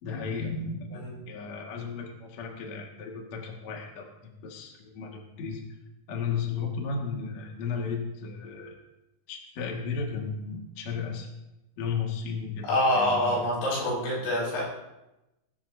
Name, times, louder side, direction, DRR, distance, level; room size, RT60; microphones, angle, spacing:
voice 1, 0.0-5.6 6.1-8.7 9.3-11.3 11.8-12.7 12.9-13.4, left 5 dB, 50° left, 0 dB, 2.5 m, -34 dB
voice 2, 12.6-14.6, left 1 dB, 75° left, -5 dB, 8.6 m, -26 dB
21.0 x 13.0 x 2.8 m, 0.96 s
omnidirectional pair, 5.5 m